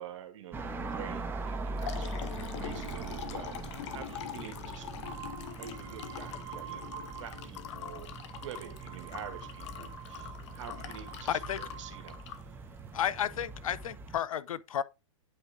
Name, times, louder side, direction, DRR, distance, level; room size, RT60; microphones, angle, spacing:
voice 1, 0.0-2.1 2.6-5.0 5.6-6.9 7.2-8.1 8.4-12.3, right 10 dB, 65° right, 2.1 m, -47 dB
sound 1, 0.5-14.2, right 3 dB, 15° right, 1.3 m, -42 dB
Liquid, 1.4-13.4, left 10 dB, 60° left, 1.1 m, -44 dB
sound 2, 5.0-7.6 7.9-12.5 13.2-13.8, right 10 dB, 40° right, 2.3 m, -49 dB
voice 2, 11.3-11.6 12.9-14.8, left 9 dB, 80° left, 0.6 m, -32 dB
8.7 x 4.7 x 3.6 m
hypercardioid pair, 130°, 17 cm